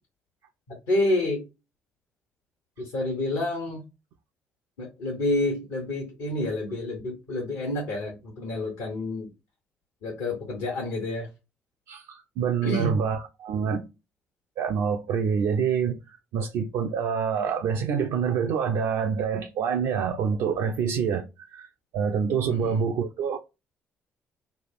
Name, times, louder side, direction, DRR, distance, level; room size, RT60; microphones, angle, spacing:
voice 1, 0.9-1.4 2.8-3.8 4.8-9.3 10.0-11.3 12.6-12.9 22.5-22.9, left 1 dB, 75° left, 1.1 m, -28 dB
voice 2, 11.9-13.9 14.6-21.7 21.9-23.4, right 6 dB, 65° right, 0.4 m, -26 dB
3.3 x 2.3 x 4.2 m
hypercardioid pair, 45°, 7 cm